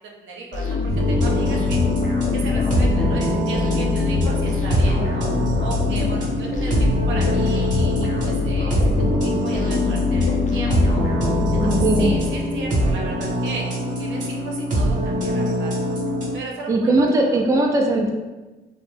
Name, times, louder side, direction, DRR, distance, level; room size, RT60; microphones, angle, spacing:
voice 1, 0.2-0.8 1.1-1.8 2.3-5.3 5.6-13.7 14.0-15.7 16.3-17.4, right 3 dB, 75° right, -2 dB, 0.7 m, -36 dB
sound 1, 0.5-12.7, left 4 dB, 40° left, 0.6 m, -24 dB
sound 2, 0.9-16.3, equal, 40° right, 0.8 m, -23 dB
voice 2, 11.6-12.1 16.7-18.1, right 2 dB, 15° right, 1 dB, 0.3 m, -19 dB
2.5 x 2.0 x 3.4 m, 1.2 s
cardioid pair, 90°, 20 cm